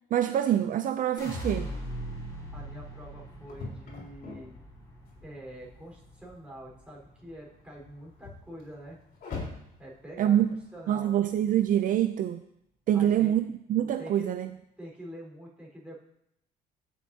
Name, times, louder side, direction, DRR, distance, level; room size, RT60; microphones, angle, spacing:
voice 1, 0.1-1.7 10.2-10.5 10.9-12.4 12.9-14.5, right 11 dB, 55° right, 10 dB, 0.4 m, -25 dB
sound 1, 1.2-7.4 7.7-8.3, equal, 20° left, 3.5 m, -41 dB
sound 2, 2.4-11.7, left 3 dB, 60° left, 3.9 m, -46 dB
voice 2, 2.5-4.5 5.2-9.0 9.8-11.1 12.9-13.3 14.0-14.3 14.8-16.0, equal, 5° right, -3 dB, 4.3 m, -45 dB
15.5 x 7.2 x 2.8 m, 0.78 s
cardioid pair, 110°, 17 cm